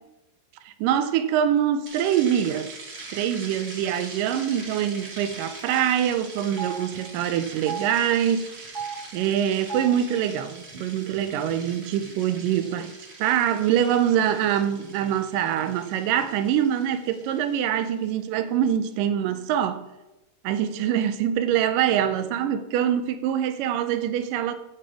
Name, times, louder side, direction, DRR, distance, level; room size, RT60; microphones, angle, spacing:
voice 1, 0.7-2.7 3.1-8.7 9.1-12.9 13.2-19.8 20.4-24.5, right 10 dB, 80° right, 2.0 m, -24 dB
sound 1, 1.9-18.1, right 3 dB, 55° right, 1.0 m, -43 dB
Telephone, 3.7-3.9 4.1-4.3 5.2-5.3 5.6-5.7 6.5-6.8 7.5-7.9 8.6-9.0 9.6-9.9 10.7-10.8 11.1-11.8, right 7 dB, 20° right, 1.5 m, -34 dB
10.0 x 8.8 x 4.8 m
omnidirectional pair, 4.4 m